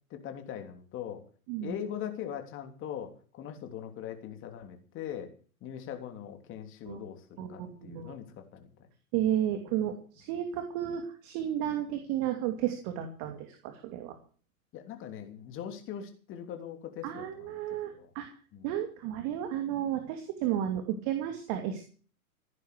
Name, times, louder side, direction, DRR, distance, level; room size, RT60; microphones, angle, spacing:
voice 1, 0.1-1.2 1.6-5.3 5.6-8.7 14.7-18.1 18.5-18.7, left 9 dB, 30° left, 6 dB, 3.1 m, -41 dB
voice 2, 7.4-8.2 9.1-14.2 17.0-18.3 18.6-21.8, right 11 dB, 35° right, 6 dB, 2.7 m, -33 dB
16.0 x 10.5 x 6.8 m, 0.41 s
hypercardioid pair, 120°, 43 cm